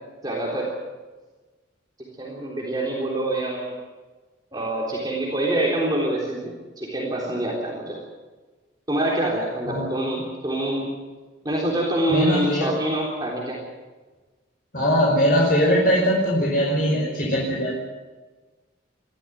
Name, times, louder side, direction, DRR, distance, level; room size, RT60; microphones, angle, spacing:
voice 1, 0.2-0.7 2.2-3.7 4.5-8.0 8.9-10.9 11.4-13.6, right 1 dB, 20° right, -3 dB, 3.7 m, -25 dB
voice 2, 12.1-12.7 14.7-17.7, equal, 45° left, -3 dB, 5.2 m, -21 dB
22.5 x 15.5 x 9.3 m, 1.3 s
head